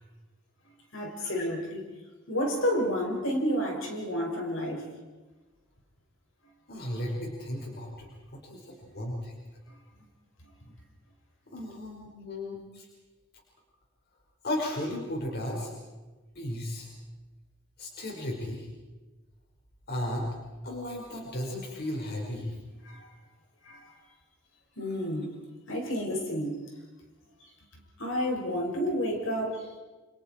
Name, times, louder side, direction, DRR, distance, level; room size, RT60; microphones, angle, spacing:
voice 1, 0.9-1.8 2.3-4.9 10.4-10.5 22.8-23.1 23.6-23.9 24.8-25.3 25.7-26.6 28.0-29.7, equal, 70° left, 0 dB, 5.9 m, -30 dB
voice 2, 6.7-9.3 11.5-12.9 14.4-15.7 16.4-16.9 17.8-18.7 19.9-20.3 20.6-22.5, left 1 dB, 50° left, -1 dB, 5.2 m, -35 dB
29.0 x 29.0 x 4.6 m, 1.2 s
head